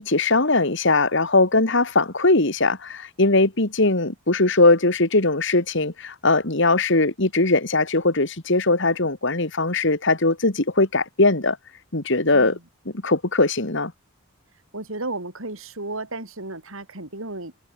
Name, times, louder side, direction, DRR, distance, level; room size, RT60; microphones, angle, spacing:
voice 1, 0.0-11.6 11.9-12.6 13.0-13.9, left 2 dB, 55° left, 2.3 m, -20 dB
voice 2, 14.7-17.5, right 2 dB, 65° right, 4.4 m, -33 dB
head